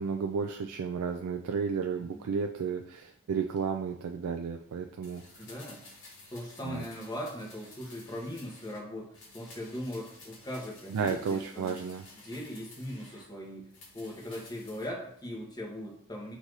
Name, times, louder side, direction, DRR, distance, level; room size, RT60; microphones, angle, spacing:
voice 1, 0.0-5.2 6.6-6.8 10.9-12.0, right 6 dB, 80° right, 3 dB, 0.3 m, -32 dB
sound 1, 5.0-8.9 9.1-13.3 13.7-14.9 15.2-15.3, left 2 dB, 60° left, 1.1 m, -53 dB
voice 2, 5.4-5.8 6.3-11.8 12.2-13.7 13.9-16.4, equal, 20° left, -2 dB, 1.0 m, -39 dB
4.1 x 2.6 x 4.6 m, 0.67 s
head